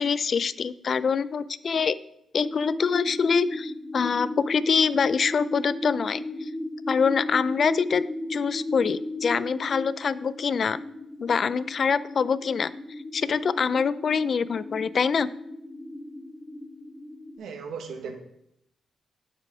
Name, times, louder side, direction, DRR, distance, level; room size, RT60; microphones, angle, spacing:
voice 1, 0.0-2.0 2.3-6.2 6.9-8.0 8.3-10.8 11.2-12.7 13.1-15.3, left 6 dB, 55° left, 16 dB, 0.3 m, -25 dB
sound 1, 2.4-17.4, left 1 dB, 15° left, 0.6 m, -36 dB
voice 2, 17.4-18.2, right 5 dB, 80° right, 5 dB, 1.0 m, -36 dB
8.1 x 4.8 x 4.8 m, 0.78 s
cardioid pair, 80°, 0 cm